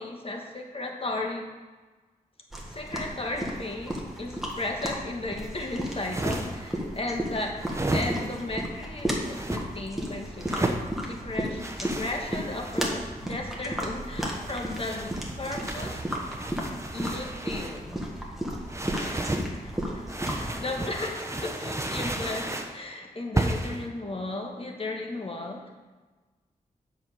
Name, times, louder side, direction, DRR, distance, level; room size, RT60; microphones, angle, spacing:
voice 1, 0.0-1.5 2.7-7.6 7.9-16.0 16.9-18.0 19.0-19.3 19.6-25.7, left 2 dB, 40° left, 2 dB, 1.4 m, -35 dB
sound 1, 2.5-20.5, equal, ahead, 1.6 m, -34 dB
sound 2, 5.8-6.7 7.6-8.5 9.2-9.6 10.4-10.9 11.6-13.0 14.0-17.8 18.7-19.5 20.1-22.7 23.4-23.8, right 1 dB, 20° right, 0.9 m, -33 dB
7.5 x 5.5 x 6.3 m, 1.3 s
wide cardioid pair, 80°, 15 cm